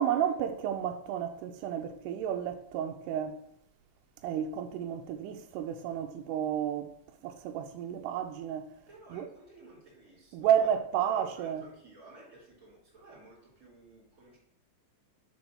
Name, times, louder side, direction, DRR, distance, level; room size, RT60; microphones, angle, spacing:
voice 1, 0.0-3.4 4.2-7.0 7.2-8.7 9.1-9.3 10.3-11.6, right 9 dB, 85° right, 2.7 m, -31 dB
voice 2, 8.9-14.4, right 2 dB, 25° right, 3.4 m, -54 dB
5.6 x 5.3 x 6.1 m
omnidirectional pair, 4.7 m